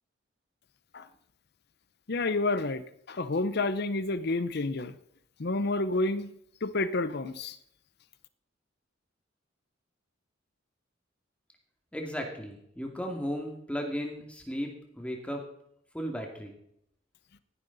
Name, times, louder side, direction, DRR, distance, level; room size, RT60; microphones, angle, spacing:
voice 1, 2.1-2.8 3.1-4.9 5.4-6.3 6.6-7.6, left 2 dB, 60° left, 13 dB, 0.7 m, -29 dB
voice 2, 11.9-15.4 15.9-16.5, equal, 5° left, 2 dB, 2.3 m, -35 dB
16.5 x 10.5 x 4.0 m, 0.72 s
head